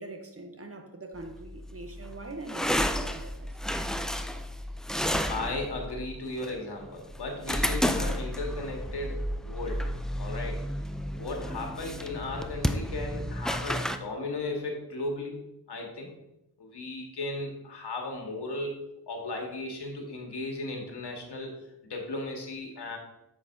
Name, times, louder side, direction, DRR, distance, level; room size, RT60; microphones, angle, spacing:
voice 1, 0.0-3.7, right 2 dB, 35° right, 0.9 m, -43 dB
sound 1, 1.2-14.0, equal, ahead, 0.3 m, -32 dB
voice 2, 5.3-9.8 10.2-10.6 11.1-15.4 15.7-16.1 16.6-18.8 19.1-21.5 21.8-23.0, left 2 dB, 85° left, 1.6 m, -36 dB
8.2 x 7.3 x 2.7 m
wide cardioid pair, 85°, 40 cm